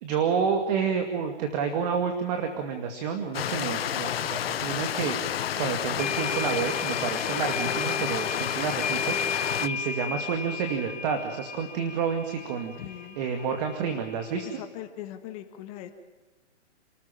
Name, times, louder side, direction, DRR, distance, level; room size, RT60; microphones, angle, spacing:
voice 1, 0.0-12.7 13.2-14.5, right 6 dB, 35° right, 6 dB, 2.3 m, -29 dB
Stream, 3.3-9.7, left 10 dB, 55° left, 1.1 m, -30 dB
sound 1, 5.7-14.6, left 4 dB, 85° left, 3.5 m, -35 dB
voice 2, 12.8-13.2 14.4-15.9, left 12 dB, 30° left, 6 dB, 1.7 m, -40 dB
29.5 x 14.0 x 9.0 m, 1.3 s
hypercardioid pair, 150°, 35 cm